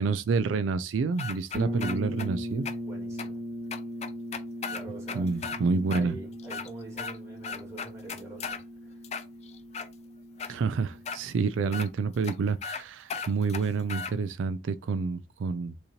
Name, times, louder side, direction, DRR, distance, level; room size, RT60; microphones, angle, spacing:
voice 1, 0.0-2.7 5.1-6.2 10.5-15.8, right 4 dB, 85° right, 0.4 m, -28 dB
sound 1, 1.2-2.3 2.7-2.8 3.2-3.3 3.7-5.6 5.9-6.0 6.4-7.2 7.4-8.6 9.0-9.9 10.4-10.5 11.1-11.2 11.7-11.9 12.2-12.3 12.6-12.8 13.1-14.1, left 5 dB, 35° left, 0.4 m, -36 dB
sound 2, 1.5-11.2, equal, 55° right, 1.3 m, -38 dB
voice 2, 1.6-1.9 2.8-3.4 4.7-5.3 5.9-9.0, right 3 dB, 15° right, 2.0 m, -45 dB
6.3 x 2.9 x 2.8 m
head